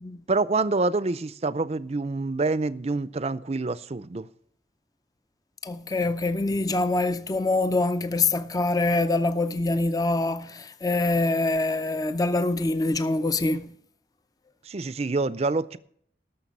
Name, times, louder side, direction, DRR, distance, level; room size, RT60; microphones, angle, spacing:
voice 1, 0.3-4.3 14.7-15.8, right 3 dB, 35° right, 0.5 m, -26 dB
voice 2, 5.6-13.7, left 2 dB, 20° left, 0.5 m, -25 dB
18.0 x 6.7 x 5.4 m
head